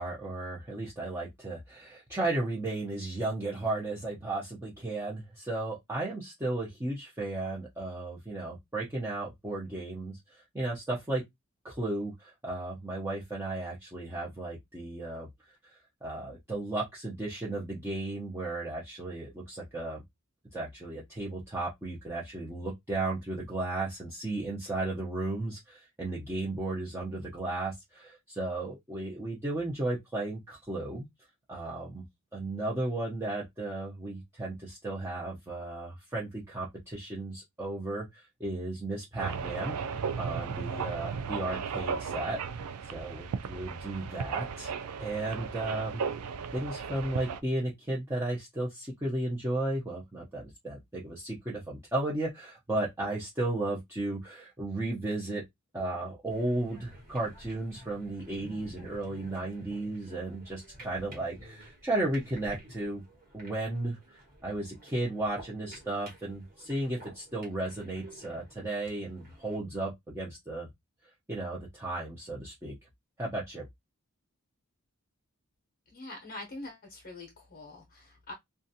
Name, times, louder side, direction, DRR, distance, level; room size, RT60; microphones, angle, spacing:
voice 1, 0.0-11.2 11.6-15.3 15.6-20.0 20.5-31.1 31.5-32.0 32.3-42.6 42.9-46.0 46.5-55.4 55.7-63.0 63.3-70.7 71.3-72.7 73.2-73.6, right 2 dB, 10° right, 0.6 m, -34 dB
sound 1, 39.2-47.4, right 6 dB, 85° right, 0.4 m, -35 dB
sound 2, 56.3-69.6, right 1 dB, 40° right, 1.2 m, -52 dB
voice 2, 75.9-78.3, left 2 dB, 40° left, 0.7 m, -44 dB
2.5 x 2.3 x 2.7 m
head